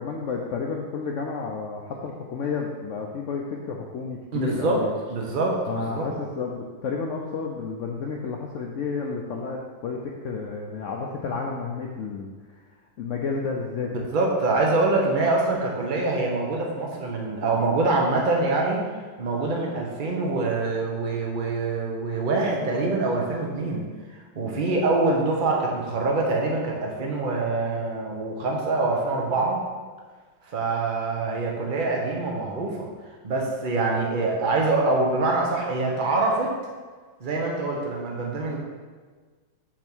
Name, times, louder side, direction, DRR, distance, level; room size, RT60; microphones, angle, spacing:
voice 1, 0.0-5.0 5.7-12.3 13.0-14.1, left 5 dB, 75° left, 0 dB, 0.7 m, -31 dB
voice 2, 4.3-4.8 5.1-6.1 14.1-18.8 19.2-23.9 24.3-29.6 30.5-32.9 33.2-36.5 37.2-38.6, right 3 dB, 35° right, -1 dB, 0.9 m, -25 dB
6.2 x 3.5 x 6.1 m, 1.5 s
omnidirectional pair, 2.0 m